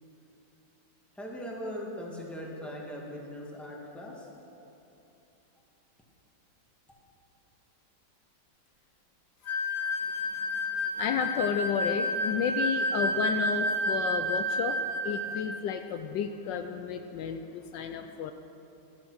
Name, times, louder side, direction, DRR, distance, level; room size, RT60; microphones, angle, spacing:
voice 1, 1.1-4.3, equal, ahead, -3 dB, 1.8 m, -40 dB
sound 1, 9.5-15.5, equal, 50° left, 1.4 m, -30 dB
voice 2, 10.9-18.3, left 7 dB, 75° left, 7 dB, 1.2 m, -32 dB
13.0 x 11.0 x 6.4 m, 3.0 s
omnidirectional pair, 2.0 m